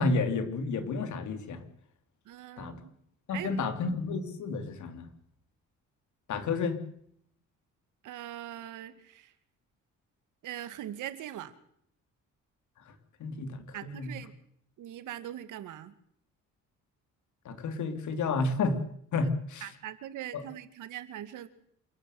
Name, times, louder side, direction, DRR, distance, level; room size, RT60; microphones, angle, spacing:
voice 1, 0.0-1.6 2.6-2.8 3.3-5.1 6.3-6.8 12.9-13.0 13.2-14.1 17.5-18.8 19.1-19.7 20.3-20.4, left 3 dB, 75° left, 8 dB, 3.6 m, -31 dB
voice 2, 2.3-2.9 3.3-3.6 8.0-9.3 10.4-11.5 13.7-14.3 14.8-15.9 19.6-21.5, right 12 dB, 85° right, 11 dB, 2.4 m, -41 dB
27.5 x 13.5 x 9.4 m, 0.68 s
cardioid pair, 90°, 30 cm